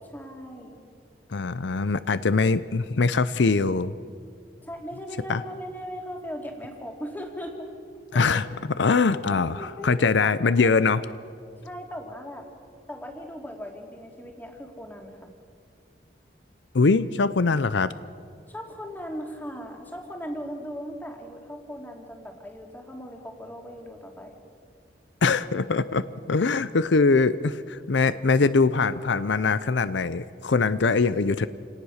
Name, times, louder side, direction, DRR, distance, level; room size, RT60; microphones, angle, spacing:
voice 1, 0.1-0.8 4.6-7.7 8.1-8.3 8.8-10.7 11.6-12.5 12.9-15.3 18.5-24.4, equal, 10° left, 2 dB, 2.6 m, -38 dB
voice 2, 1.3-3.9 5.3-5.4 8.1-11.0 16.7-17.9 25.2-31.5, left 4 dB, 75° left, 14 dB, 0.6 m, -22 dB
28.5 x 18.5 x 6.5 m, 2.3 s
head